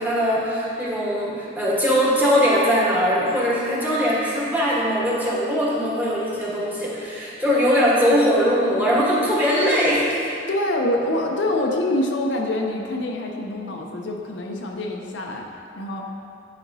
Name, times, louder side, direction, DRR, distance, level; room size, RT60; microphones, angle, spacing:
voice 1, 0.0-10.3, equal, 10° right, -7 dB, 1.3 m, -21 dB
voice 2, 10.5-15.5 15.8-16.1, left 1 dB, 70° left, 1 dB, 0.6 m, -25 dB
10.0 x 5.0 x 2.7 m, 2.6 s
head